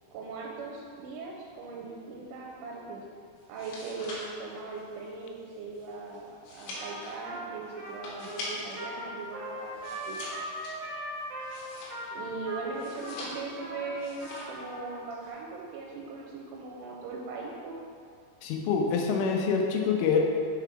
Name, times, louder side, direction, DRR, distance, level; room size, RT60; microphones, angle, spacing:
voice 1, 0.1-3.0 3.5-10.2 12.1-17.8, right 3 dB, 90° right, -2 dB, 3.2 m, -39 dB
sound 1, 3.4-8.9 9.2-12.3 12.7-13.6 14.0-14.6 14.9-15.3, left 1 dB, 70° left, 3.4 m, -43 dB
Trumpet, 6.7-15.0, right 1 dB, 70° right, 2.3 m, -40 dB
voice 2, 18.4-20.2, left 5 dB, 90° left, 2 dB, 3.3 m, -26 dB
7.0 x 5.0 x 4.6 m, 2.3 s
omnidirectional pair, 5.5 m